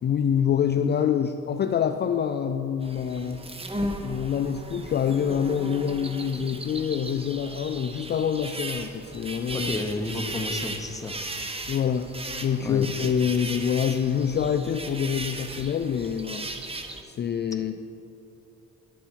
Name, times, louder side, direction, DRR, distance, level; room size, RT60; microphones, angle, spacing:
voice 1, 0.0-3.4 4.0-9.7 11.7-12.1 12.4-16.8 17.0-17.8, left 8 dB, 35° left, 7 dB, 0.4 m, -26 dB
sound 1, 2.8-17.0, right 2 dB, 20° right, 0.8 m, -36 dB
voice 2, 9.5-11.2 12.6-12.9 17.6-17.7, left 2 dB, 10° left, 4 dB, 0.8 m, -31 dB
10.0 x 7.3 x 4.6 m, 2.7 s
cardioid pair, 90°, 30 cm